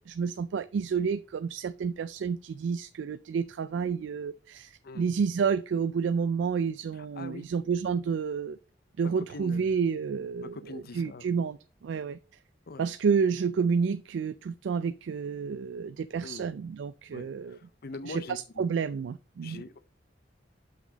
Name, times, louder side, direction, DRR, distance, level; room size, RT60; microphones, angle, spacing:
voice 1, 0.1-8.6 9.0-12.2 12.8-17.6 18.0-19.6, right 6 dB, 75° right, 0.3 m, -30 dB
voice 2, 6.9-7.4 9.2-9.7 10.4-11.2 12.7-12.9 16.2-16.4 17.1-18.7 19.4-19.8, left 3 dB, 55° left, 0.6 m, -43 dB
6.0 x 5.8 x 3.9 m
head